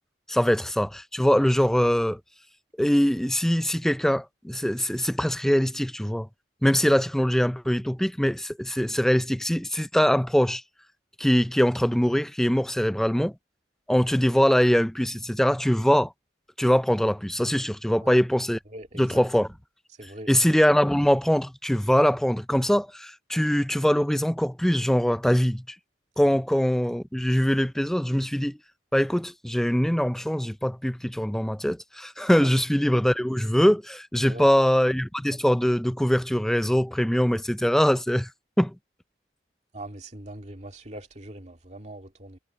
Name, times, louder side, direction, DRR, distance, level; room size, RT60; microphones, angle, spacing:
voice 1, 0.3-2.2 2.8-6.3 6.6-10.6 11.2-13.3 13.9-16.1 16.6-18.6 18.9-19.5 20.3-25.6 26.2-28.6 28.9-38.3 38.6-38.7, equal, ahead, 0.4 m, -22 dB
voice 2, 18.7-19.2 20.0-20.3 34.2-34.5 39.7-42.4, right 1 dB, 40° right, 2.2 m, -41 dB
head